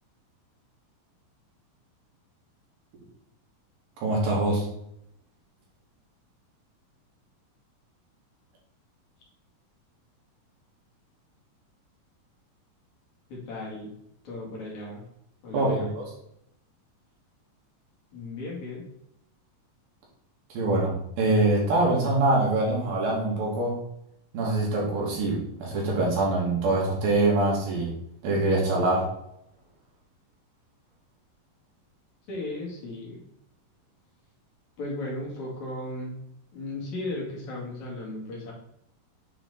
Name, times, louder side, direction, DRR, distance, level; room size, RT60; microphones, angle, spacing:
voice 1, 4.0-4.7 15.5-16.1 20.5-23.8 24.3-27.9 28.2-29.1, right 2 dB, 85° right, -4 dB, 3.9 m, -24 dB
voice 2, 13.3-13.9 14.2-15.0 15.4-15.9 18.1-18.8 32.3-33.2 34.8-36.2 36.5-38.5, left 2 dB, 55° left, -4 dB, 3.2 m, -35 dB
8.8 x 4.3 x 4.1 m, 0.76 s
omnidirectional pair, 4.0 m